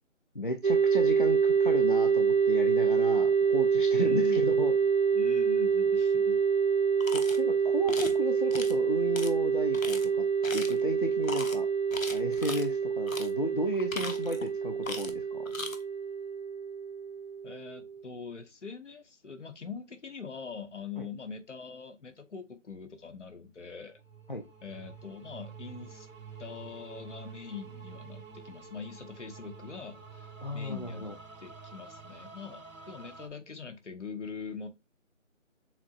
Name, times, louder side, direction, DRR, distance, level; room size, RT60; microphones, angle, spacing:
voice 1, 0.3-4.7 7.1-10.2 10.5-11.7 12.1-15.4 21.0-21.1 24.3-24.4 30.4-31.1, left 1 dB, 40° left, 0.4 m, -34 dB
sound 1, 0.6-18.0, right 6 dB, 50° right, 0.6 m, -27 dB
voice 2, 3.9-4.8 5.1-6.4 17.4-24.0 24.6-26.1 26.4-30.3 30.5-34.7, left 6 dB, 65° left, 1.1 m, -43 dB
sound 2, 7.0-7.4 7.9-8.2 8.5-8.7 9.1-9.3 9.7-10.0 10.4-10.8 11.2-11.6 11.9-12.7 13.1-13.3 13.7-14.5 14.8-15.2 15.5-15.8, left 3 dB, 85° left, 1.1 m, -38 dB
sound 3, 23.9-33.3, right 5 dB, 80° right, 1.1 m, -48 dB
7.0 x 2.9 x 2.4 m
figure-of-eight pair, 165°, 39 cm